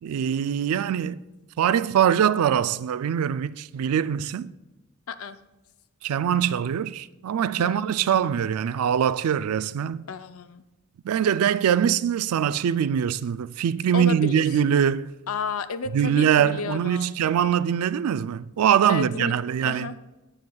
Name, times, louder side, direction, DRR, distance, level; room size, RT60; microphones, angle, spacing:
voice 1, 0.0-1.2 1.6-4.5 6.0-10.0 11.0-15.1 15.9-19.9, right 9 dB, 90° right, 0.3 m, -23 dB
voice 2, 5.1-5.4 7.6-8.1 10.1-10.6 13.9-14.4 15.3-17.2 18.9-19.3 19.6-19.9, left 5 dB, 70° left, 0.5 m, -32 dB
14.0 x 7.9 x 2.3 m
head